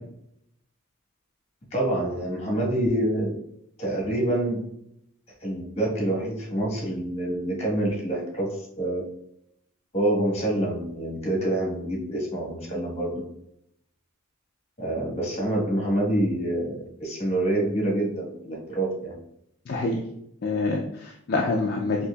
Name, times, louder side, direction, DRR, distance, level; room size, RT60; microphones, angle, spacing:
voice 1, 1.7-3.3 3.8-4.6 5.4-9.0 9.9-13.2 14.8-19.1, right 1 dB, 30° left, -3 dB, 1.2 m, -26 dB
voice 2, 19.7-20.0 20.4-22.1, left 3 dB, 50° left, 0 dB, 0.3 m, -26 dB
4.1 x 2.8 x 2.3 m, 0.75 s
head